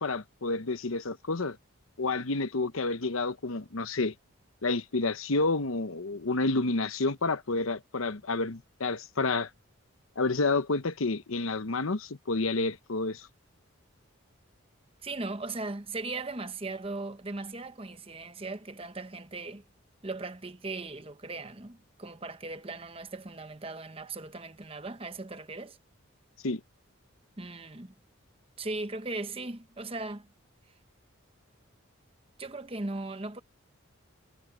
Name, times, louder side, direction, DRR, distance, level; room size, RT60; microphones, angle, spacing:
voice 1, 0.0-1.6 2.0-4.1 4.6-9.5 10.2-13.3 26.4-26.6, left 3 dB, 75° left, 1.0 m, -29 dB
voice 2, 15.0-19.6 20.0-25.8 27.4-27.9 28.6-30.3 32.4-33.4, right 2 dB, 25° right, 1.0 m, -38 dB
head